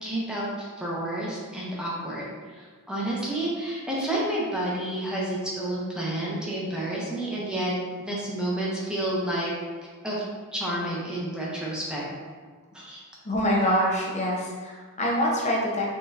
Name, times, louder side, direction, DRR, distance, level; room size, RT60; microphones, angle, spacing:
voice 1, 0.0-7.7 8.0-9.5 10.0-10.2 10.5-12.0 12.7-13.0, right 1 dB, 5° right, -6 dB, 0.8 m, -30 dB
voice 2, 13.2-15.9, equal, 30° left, -3 dB, 0.7 m, -25 dB
3.8 x 3.7 x 2.8 m, 1.5 s
head